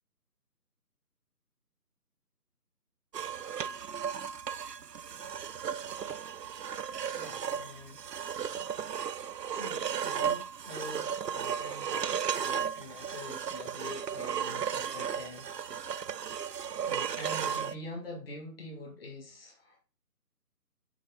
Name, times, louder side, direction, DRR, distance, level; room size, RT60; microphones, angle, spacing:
sound 1, 3.1-17.8, right 8 dB, 80° right, 0.6 m, -35 dB
voice 1, 7.1-8.0 9.5-16.0 16.9-19.8, left 1 dB, 35° left, -1 dB, 2.0 m, -45 dB
6.4 x 4.5 x 4.9 m, 0.36 s
figure-of-eight pair, 160°, 48 cm